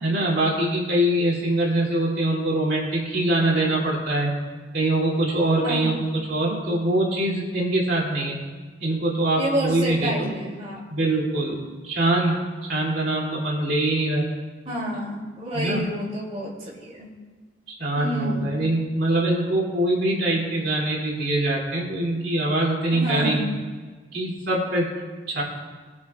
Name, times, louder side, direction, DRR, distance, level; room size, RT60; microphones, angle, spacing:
voice 1, 0.0-4.3 4.7-5.9 6.3-8.4 8.8-10.3 10.9-11.6 11.8-12.4 12.7-14.2 15.5-15.8 17.7-23.5 24.1-24.9 25.3-25.4, right 1 dB, 65° right, -3 dB, 2.8 m, -23 dB
voice 2, 5.6-6.0 9.3-10.8 14.6-17.1 18.0-18.5 22.9-23.4, equal, 35° right, -4 dB, 2.8 m, -29 dB
22.0 x 9.3 x 2.4 m, 1.4 s
head